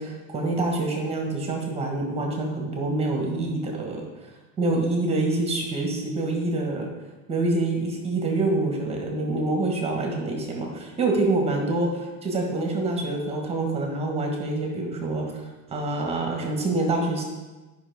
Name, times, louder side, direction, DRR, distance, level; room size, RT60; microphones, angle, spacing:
voice 1, 0.0-4.0 4.6-6.9 7.3-15.3 15.7-17.2, right 2 dB, 15° right, 0 dB, 1.2 m, -26 dB
10.0 x 5.4 x 3.5 m, 1.2 s
supercardioid pair, 155°, 40 cm